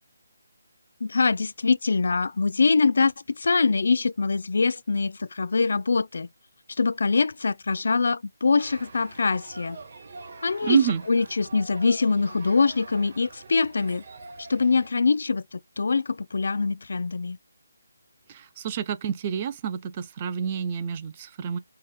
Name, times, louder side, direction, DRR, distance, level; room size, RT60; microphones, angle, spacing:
voice 1, 1.0-6.3 6.8-9.8 10.4-10.8 11.1-14.0 14.4-17.4, left 4 dB, 60° left, 0.3 m, -24 dB
sound 1, 8.6-14.9, right 3 dB, 40° right, 1.7 m, -45 dB
voice 2, 10.6-11.0 18.3-21.6, right 8 dB, 20° right, 0.4 m, -28 dB
5.7 x 2.1 x 3.1 m
hypercardioid pair, 170°, 0 cm